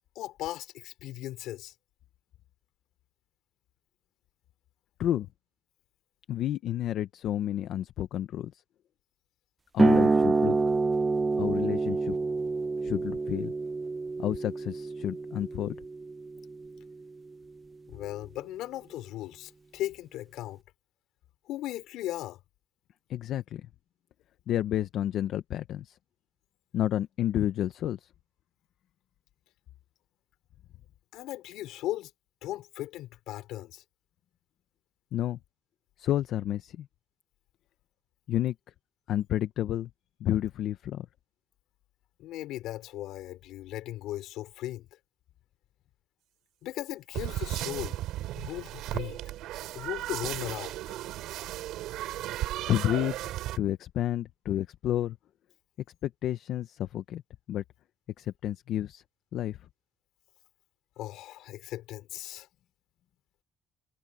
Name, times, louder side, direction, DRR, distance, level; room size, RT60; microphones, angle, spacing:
voice 1, 0.1-1.7 17.9-20.6 21.5-22.4 31.1-32.1 32.4-33.8 42.2-44.9 46.6-48.0 48.3-49.2 49.7-51.0 61.0-62.5, left 15 dB, 80° left, 4.8 m, -37 dB
voice 2, 6.3-8.6 9.7-10.6 11.4-12.2 12.8-13.5 14.2-15.8 23.1-23.7 24.5-26.0 26.7-28.1 35.1-35.4 36.0-36.9 38.3-38.5 39.1-39.9 40.2-41.1 52.7-53.2 53.6-55.2 56.0-57.2 57.5-57.6 58.2-59.0 59.3-59.6, left 12 dB, 60° left, 0.7 m, -30 dB
sound 1, 9.8-16.9, right 3 dB, 20° right, 0.7 m, -27 dB
sound 2, 47.1-53.6, right 14 dB, 85° right, 3.0 m, -35 dB
cardioid pair, 150°, 0 cm